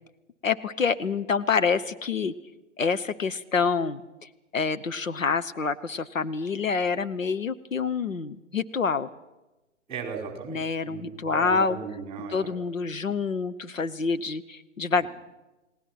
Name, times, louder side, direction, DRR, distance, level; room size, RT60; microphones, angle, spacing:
voice 1, 0.4-2.3 2.8-4.0 4.5-9.1 10.5-11.8 12.3-15.1, left 5 dB, 75° left, 11 dB, 1.1 m, -27 dB
voice 2, 9.9-12.5, right 6 dB, 15° right, 3 dB, 4.8 m, -36 dB
30.0 x 18.5 x 6.0 m, 1.1 s
figure-of-eight pair, 130°, 40 cm